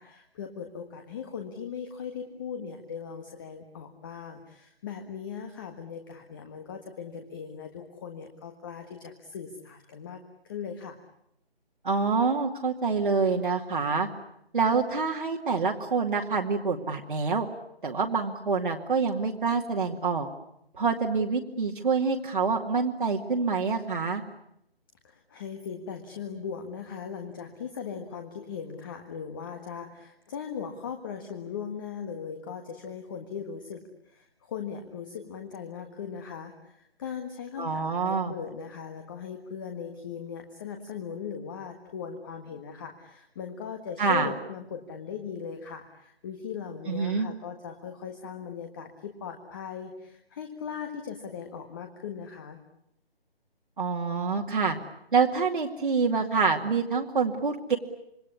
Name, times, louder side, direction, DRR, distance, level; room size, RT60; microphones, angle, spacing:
voice 1, 0.0-10.2 10.4-11.0 25.0-52.6, left 7 dB, 20° left, 5 dB, 1.6 m, -39 dB
voice 2, 11.8-14.1 14.5-17.5 17.8-20.3 20.8-24.2 37.6-38.3 44.0-44.3 46.9-47.3 53.8-54.8 55.1-57.8, right 4 dB, 55° right, 0 dB, 2.4 m, -26 dB
27.0 x 23.0 x 9.8 m, 0.79 s
figure-of-eight pair, 155°, 31 cm